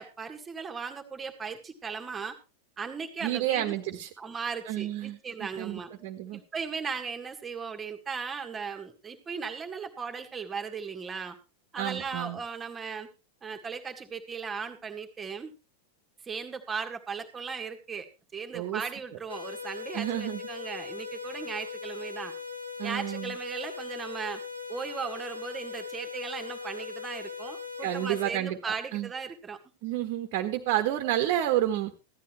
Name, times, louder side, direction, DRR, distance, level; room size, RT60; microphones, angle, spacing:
voice 1, 0.0-2.4 2.8-3.8 4.2-5.9 6.3-11.4 11.7-13.1 13.4-15.5 16.2-18.1 18.3-22.3 22.8-24.4 24.7-29.6, right 5 dB, 20° right, 6 dB, 1.9 m, -37 dB
voice 2, 3.2-4.1 4.7-5.2 5.6-6.4 11.8-12.4 18.5-18.8 19.9-20.4 22.8-23.3 27.8-28.6 28.9-29.1 29.8-31.9, right 13 dB, 45° right, 6 dB, 1.4 m, -30 dB
sound 1, 19.3-28.3, left 5 dB, 85° left, 1.9 m, -39 dB
16.0 x 12.5 x 3.2 m, 0.30 s
figure-of-eight pair, 90°, 0 cm